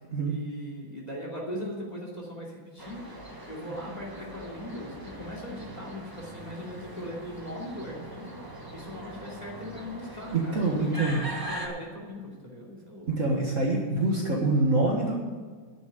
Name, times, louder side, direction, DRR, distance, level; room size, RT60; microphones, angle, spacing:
voice 1, 0.2-3.0 3.4-8.4 8.7-13.1, equal, 20° left, -2 dB, 2.8 m, -39 dB
sound 1, 2.8-11.7, right 1 dB, 15° right, 1.2 m, -41 dB
voice 2, 10.3-11.2 13.1-15.1, right 2 dB, 45° right, -2 dB, 1.7 m, -25 dB
10.5 x 7.1 x 9.4 m, 1.5 s
omnidirectional pair, 2.1 m